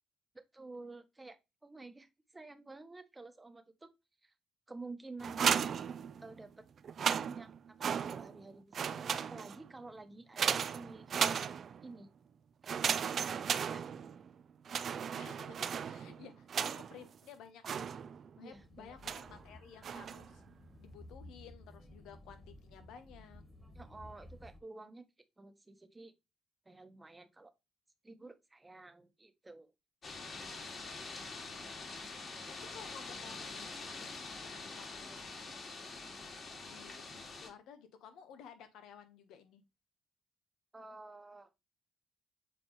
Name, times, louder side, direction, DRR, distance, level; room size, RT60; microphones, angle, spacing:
voice 1, 0.5-3.9 4.2-4.3 4.7-5.7 6.2-6.6 7.1-11.5 11.8-12.1 12.6-13.9 18.4-19.3 23.7-25.0 25.4-26.1 26.6-27.5 28.0-29.7 40.7-41.6, right 3 dB, 15° right, 1.1 m, -51 dB
sound 1, 5.2-6.4 6.8-8.4 8.7-9.7 10.4-11.9 12.6-14.3 14.7-17.1 17.6-18.4 19.0-19.4 19.8-20.3, right 7 dB, 55° right, 0.5 m, -35 dB
voice 2, 15.1-17.9 18.4-20.4 20.8-23.4 30.7-31.2 32.7-35.3 36.6-39.6, left 8 dB, 85° left, 1.3 m, -55 dB
sound 2, 18.5-24.6, left 1 dB, 5° left, 1.6 m, -55 dB
sound 3, 30.0-37.5, left 3 dB, 45° left, 2.4 m, -45 dB
7.4 x 4.2 x 3.2 m
cardioid pair, 90°, 0 cm